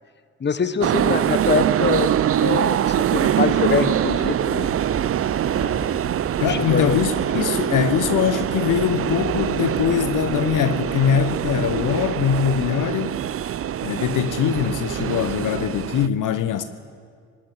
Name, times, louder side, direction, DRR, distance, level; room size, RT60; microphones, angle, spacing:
voice 1, 0.4-2.1 2.4-4.8 6.5-7.0, left 5 dB, 30° left, 1.3 m, -24 dB
sound 1, 0.8-16.1, right 10 dB, 40° right, 0.6 m, -23 dB
sound 2, 3.0-12.5, right 2 dB, 55° right, 5.5 m, -38 dB
voice 2, 6.4-13.2 13.8-16.6, left 9 dB, 60° left, 1.1 m, -22 dB
18.0 x 17.5 x 9.6 m
hypercardioid pair, 55°, 36 cm